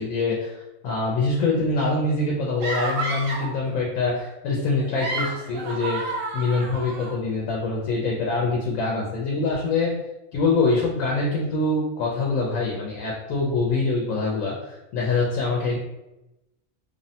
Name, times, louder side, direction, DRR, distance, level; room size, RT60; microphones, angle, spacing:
voice 1, 0.0-6.0 6.3-9.9 10.3-15.8, left 3 dB, 85° left, -2 dB, 1.0 m, -24 dB
sound 1, 2.6-3.6 4.8-7.2, right 2 dB, 75° right, 1.0 m, -30 dB
3.0 x 2.0 x 2.7 m, 0.95 s
omnidirectional pair, 1.3 m